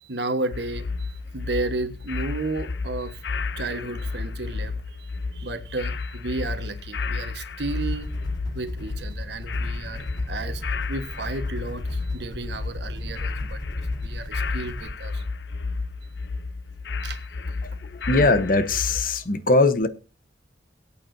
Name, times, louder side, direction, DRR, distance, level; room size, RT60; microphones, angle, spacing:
voice 1, 0.0-3.2 3.6-8.1 8.5-15.2 17.0-17.2 17.5-17.6, right 2 dB, 65° right, 1.3 m, -33 dB
sound 1, 0.5-19.2, left 4 dB, 70° left, 0.6 m, -32 dB
sound 2, 7.6-14.9, left 1 dB, 25° left, 4.9 m, -36 dB
voice 2, 17.8-19.9, left 2 dB, 50° left, 1.1 m, -21 dB
22.5 x 8.5 x 2.7 m
head